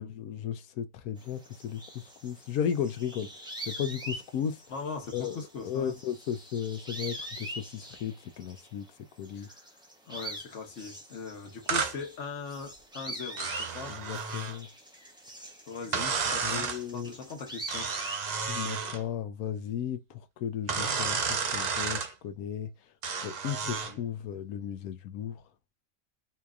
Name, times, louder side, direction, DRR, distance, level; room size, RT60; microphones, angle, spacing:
voice 1, 0.0-4.6 5.1-8.9 9.2-9.5 13.9-14.7 16.0-16.1 16.4-17.2 18.5-22.7 23.2-25.4, left 9 dB, 90° left, 1.1 m, -35 dB
sound 1, 1.2-8.9 9.2-18.3, right 1 dB, 5° right, 0.6 m, -44 dB
voice 2, 4.7-6.0 9.3-9.6 10.1-14.0 15.7-17.9 23.6-24.0, left 4 dB, 60° left, 1.3 m, -40 dB
sound 2, 11.7-12.0 13.4-14.6 15.9-16.8 17.7-19.0 20.7-22.1 23.0-24.0, right 5 dB, 55° right, 0.4 m, -31 dB
4.1 x 2.9 x 2.4 m
omnidirectional pair, 1.5 m